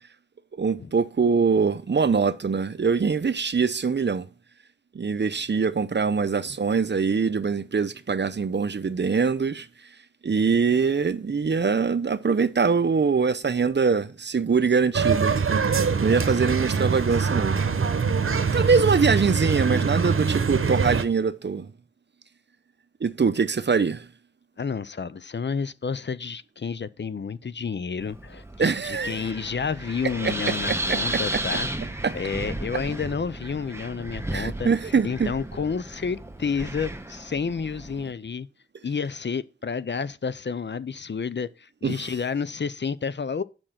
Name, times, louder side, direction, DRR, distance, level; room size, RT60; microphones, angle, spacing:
voice 1, 0.5-4.3 4.9-9.7 10.2-15.3 16.0-17.6 18.5-21.7 23.0-24.1 28.6-29.2 30.2-30.3 30.7-31.0 31.3-31.4 32.0-32.1 34.3-35.3 41.8-42.1, right 5 dB, 60° right, 0.7 m, -23 dB
sound 1, 14.9-21.0, right 5 dB, 85° right, 0.9 m, -23 dB
voice 2, 24.6-34.7 35.0-38.5 38.8-43.4, left 5 dB, 60° left, 0.6 m, -30 dB
Wind, 28.0-38.1, right 1 dB, 10° right, 1.2 m, -34 dB
9.0 x 6.1 x 5.8 m
wide cardioid pair, 65°, 21 cm